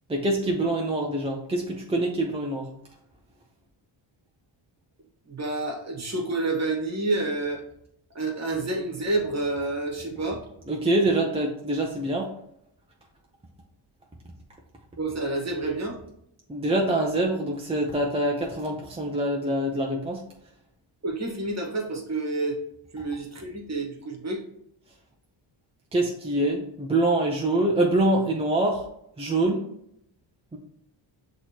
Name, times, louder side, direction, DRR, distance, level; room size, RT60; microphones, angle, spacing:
voice 1, 0.1-2.7 10.7-12.3 16.5-20.2 25.9-28.8 29.2-29.6 30.5-30.6, right 1 dB, 15° right, -1 dB, 0.5 m, -25 dB
voice 2, 5.3-7.6 8.1-10.4 15.0-16.0 21.0-22.6 22.9-24.4, right 2 dB, 35° right, 1 dB, 1.3 m, -29 dB
6.0 x 3.1 x 2.8 m, 0.75 s
cardioid pair, 100°, 47 cm